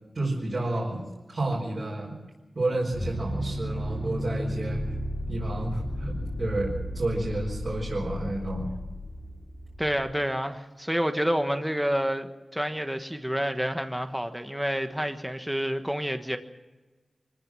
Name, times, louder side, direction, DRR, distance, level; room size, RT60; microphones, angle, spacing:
voice 1, 0.1-2.2 2.5-4.8 5.3-8.7, right 2 dB, 55° right, -3 dB, 4.9 m, -30 dB
sound 1, 2.9-10.1, equal, 25° left, 3.8 m, -34 dB
voice 2, 9.8-16.4, equal, 5° right, 7 dB, 1.4 m, -28 dB
24.5 x 15.0 x 7.5 m, 1.2 s
wide cardioid pair, 95°, 0 cm